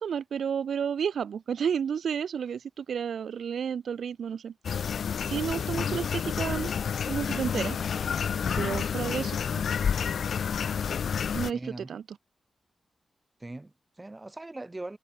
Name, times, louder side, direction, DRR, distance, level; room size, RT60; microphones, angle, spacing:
voice 1, 0.0-4.9 5.3-6.7 7.1-7.8 8.6-9.6 11.3-12.2, right 7 dB, 80° right, 2.7 m, -31 dB
sound 1, 4.6-11.5, left 7 dB, 70° left, 0.8 m, -29 dB
voice 2, 8.6-8.9 11.5-11.9 13.4-15.0, right 2 dB, 20° right, 7.7 m, -40 dB
wide cardioid pair, 125°, 0 cm